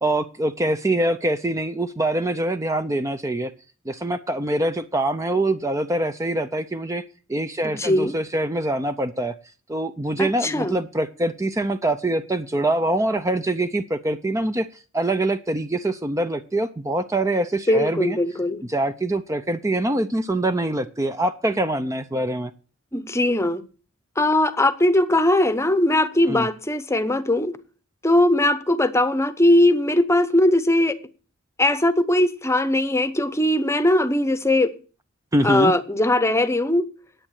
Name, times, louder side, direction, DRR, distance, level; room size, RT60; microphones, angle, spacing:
voice 1, 0.0-3.5 3.9-7.0 7.3-9.3 9.7-14.7 14.9-18.2 18.7-22.5 26.3-26.5 35.3-35.7, right 1 dB, 15° right, 9 dB, 0.5 m, -24 dB
voice 2, 7.6-8.2 10.2-10.8 17.7-18.6 22.9-23.6 24.2-27.6 28.0-31.0 31.6-34.7 35.4-36.9, left 1 dB, 15° left, 13 dB, 0.8 m, -20 dB
10.5 x 8.9 x 6.4 m, 0.37 s
head